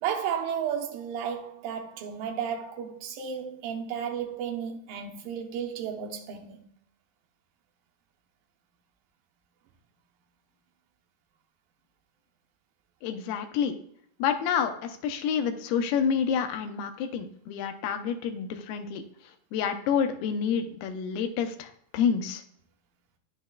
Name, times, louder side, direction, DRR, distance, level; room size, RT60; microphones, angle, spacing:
voice 1, 0.0-6.7, right 8 dB, 75° right, 2.5 m, -33 dB
voice 2, 13.0-13.8 14.2-19.0 19.5-22.4, left 7 dB, 85° left, 2.7 m, -28 dB
10.0 x 6.4 x 2.3 m
omnidirectional pair, 4.4 m